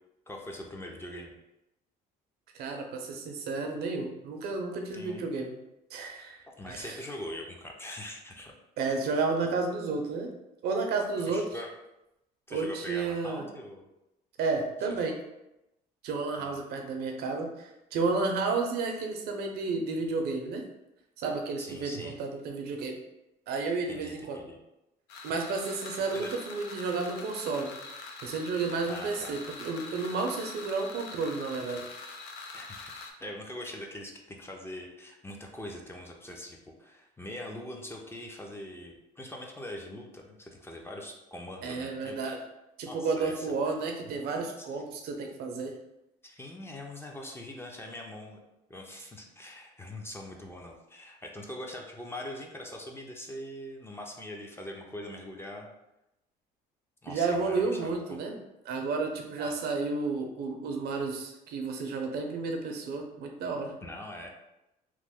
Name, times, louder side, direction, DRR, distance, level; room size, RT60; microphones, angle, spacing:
voice 1, 0.3-1.4 4.9-5.3 6.6-8.5 11.3-11.7 12.5-13.9 14.9-15.0 16.4-16.6 21.6-22.2 23.9-24.6 26.1-26.3 28.9-29.4 32.5-42.2 42.9-43.5 44.6-44.7 46.2-48.4 48.7-55.7 57.0-58.2 59.4-59.6 63.8-64.3, left 1 dB, 15° left, 1 dB, 0.5 m, -42 dB
voice 2, 2.5-5.5 5.9-7.0 8.8-10.3 10.6-11.5 12.5-13.5 14.4-15.2 16.0-20.7 21.2-23.0 23.5-24.4 25.2-27.7 28.2-31.8 41.6-42.4 42.8-45.7 57.1-58.4 58.6-63.7, right 4 dB, 70° right, 3 dB, 0.6 m, -32 dB
sound 1, 25.1-33.1, left 3 dB, 85° left, 0.5 m, -44 dB
3.0 x 2.0 x 3.5 m, 0.89 s
cardioid pair, 110°, 17 cm